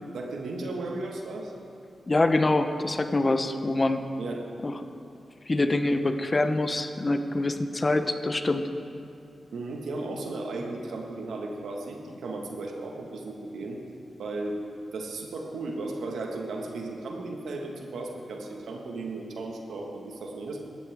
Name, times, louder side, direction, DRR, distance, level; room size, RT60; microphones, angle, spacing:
voice 1, 0.1-1.5 4.2-4.5 9.5-13.8 14.2-14.6 14.9-20.6, right 2 dB, 85° right, 1 dB, 1.7 m, -35 dB
voice 2, 2.1-4.0 4.6-4.7 5.5-8.7, left 2 dB, 35° left, 8 dB, 0.9 m, -25 dB
18.5 x 13.0 x 3.6 m, 2.6 s
cardioid pair, 55°, 0 cm